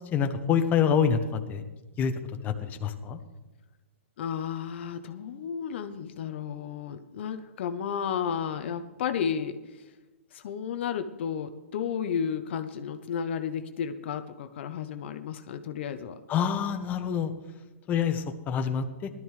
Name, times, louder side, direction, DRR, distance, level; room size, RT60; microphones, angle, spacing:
voice 1, 0.1-1.6 2.0-2.1 2.4-3.2 16.3-17.3 17.9-19.1, left 7 dB, 25° left, 7 dB, 1.0 m, -26 dB
voice 2, 4.2-9.6 10.3-16.2, left 7 dB, 55° left, 9 dB, 0.8 m, -32 dB
17.0 x 12.0 x 3.2 m, 1.1 s
hypercardioid pair, 130°, 7 cm